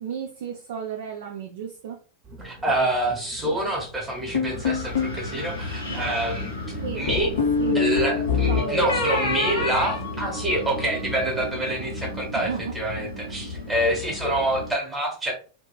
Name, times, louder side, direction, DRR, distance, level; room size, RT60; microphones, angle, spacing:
voice 1, 0.0-2.0 6.7-7.1 7.6-7.9 8.5-9.0 12.3-12.8, right 8 dB, 55° right, 0.3 m, -33 dB
sound 1, 2.2-7.9, equal, 35° right, 0.8 m, -44 dB
voice 2, 2.4-6.5 6.9-7.4 7.7-12.5 12.7-15.3, right 1 dB, 10° right, 1.0 m, -26 dB
sound 2, 4.3-5.2 7.1-10.8, left 5 dB, 65° left, 0.6 m, -25 dB
Wind, 4.4-14.7, left 1 dB, 85° left, 1.1 m, -34 dB
2.6 x 2.3 x 2.2 m
figure-of-eight pair, 90°, 0 cm